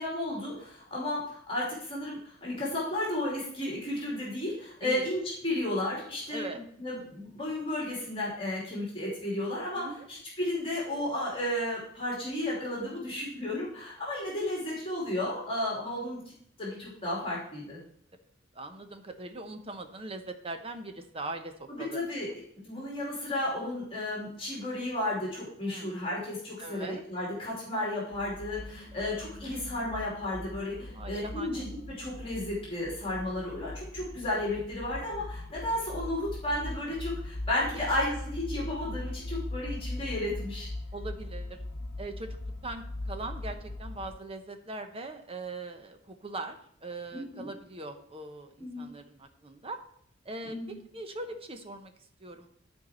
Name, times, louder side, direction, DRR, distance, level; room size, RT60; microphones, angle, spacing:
voice 1, 0.0-6.5 6.8-9.8 10.1-16.2 16.6-17.8 21.7-22.3 22.6-31.7 32.0-40.7 47.1-47.5 48.6-48.9 50.4-50.8, left 1 dB, 30° left, -5 dB, 2.8 m, -33 dB
voice 2, 18.5-22.0 25.6-26.0 26.6-27.0 30.9-31.7 37.7-37.9 40.9-41.6 42.0-42.4 42.6-49.8 50.2-51.9 52.2-52.5, right 2 dB, 30° right, 6 dB, 0.9 m, -41 dB
sound 1, 28.1-44.1, left 2 dB, 65° left, 1.4 m, -40 dB
12.0 x 4.7 x 4.3 m, 0.65 s
head